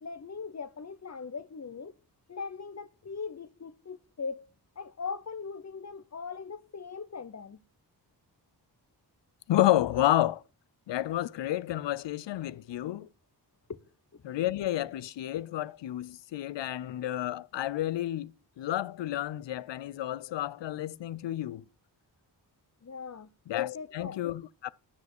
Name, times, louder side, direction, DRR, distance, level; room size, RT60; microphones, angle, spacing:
voice 1, 0.0-1.9 2.3-4.4 4.8-7.6 13.7-13.8 14.1-14.2 22.8-23.3 23.6-24.2, left 5 dB, 40° left, 0.8 m, -40 dB
voice 2, 9.5-10.4 10.9-13.1 14.2-18.3 18.6-21.6 23.5-24.7, left 14 dB, 85° left, 0.5 m, -30 dB
12.5 x 4.9 x 8.2 m
wide cardioid pair, 80°, 42 cm